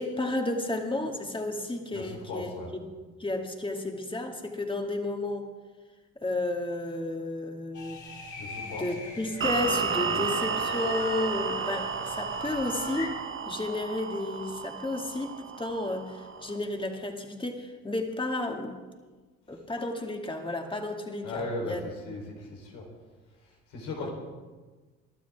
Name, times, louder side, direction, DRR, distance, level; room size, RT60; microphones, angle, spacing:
voice 1, 0.0-2.9 3.2-5.5 6.2-8.0 8.6-13.2 13.4-18.8 19.5-21.9 24.0-24.1, left 2 dB, 15° left, 3 dB, 2.4 m, -32 dB
voice 2, 1.9-2.7 8.4-9.0 10.0-10.3 21.2-22.9 23.7-24.1, left 2 dB, 80° left, -1 dB, 4.0 m, -37 dB
sound 1, 7.7-13.1, left 4 dB, 60° left, 2.8 m, -42 dB
sound 2, 9.4-16.6, right 6 dB, 40° right, 1.2 m, -32 dB
23.0 x 12.5 x 3.6 m, 1.3 s
hypercardioid pair, 55°, 33 cm